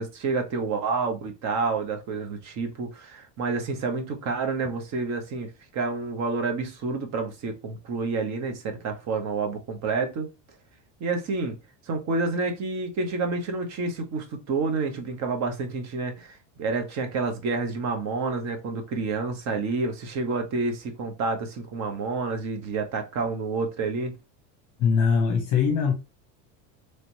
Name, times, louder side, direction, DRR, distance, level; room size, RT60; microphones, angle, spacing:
voice 1, 0.0-10.3 11.0-11.6 11.9-24.2, right 4 dB, 45° right, 1.0 m, -29 dB
voice 2, 24.8-25.9, left 6 dB, 45° left, 0.7 m, -21 dB
3.3 x 2.9 x 2.7 m
supercardioid pair, 115°, 38 cm